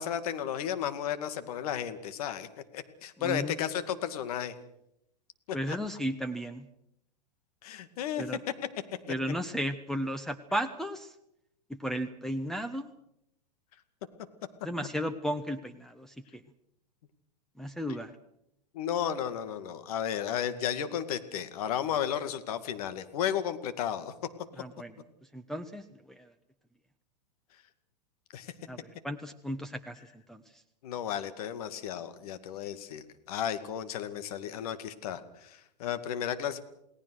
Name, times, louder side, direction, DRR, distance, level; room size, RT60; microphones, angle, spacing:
voice 1, 0.0-2.5 2.7-4.5 5.5-5.8 7.6-8.3 18.7-24.1 28.3-28.5 30.8-36.6, left 9 dB, 60° left, 11 dB, 2.3 m, -33 dB
voice 2, 3.2-3.5 5.5-6.6 8.2-8.4 9.1-11.1 11.8-12.9 14.6-16.1 17.6-18.1 24.6-24.9 25.3-26.2 28.7-28.8 29.0-29.9 30.3-30.4, equal, ahead, 4 dB, 1.2 m, -34 dB
29.0 x 18.5 x 6.4 m, 0.79 s
hypercardioid pair, 105°, 21 cm